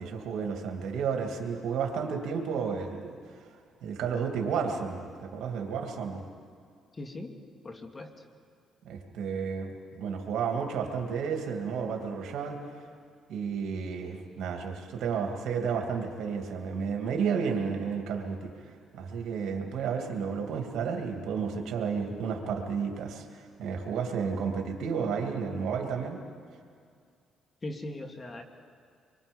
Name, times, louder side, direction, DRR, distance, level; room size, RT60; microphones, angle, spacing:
voice 1, 0.0-3.2 3.8-6.2 8.8-12.6 13.3-26.2, right 6 dB, 80° right, 3 dB, 2.5 m, -32 dB
voice 2, 7.0-7.3 7.6-8.1 27.6-28.4, left 1 dB, 30° left, 4 dB, 2.2 m, -39 dB
25.5 x 23.0 x 5.4 m, 2.3 s
cardioid pair, 90°, 0 cm